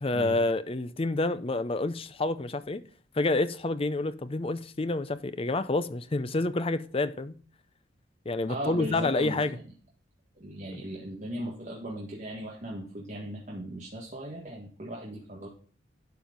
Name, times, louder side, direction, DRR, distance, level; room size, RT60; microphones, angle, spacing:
voice 1, 0.0-2.8 3.1-7.4 8.3-9.6 10.7-10.8, left 2 dB, 30° left, 0.5 m, -28 dB
voice 2, 8.5-9.6 10.4-15.5, equal, 40° right, 1.8 m, -38 dB
11.5 x 4.6 x 5.1 m
head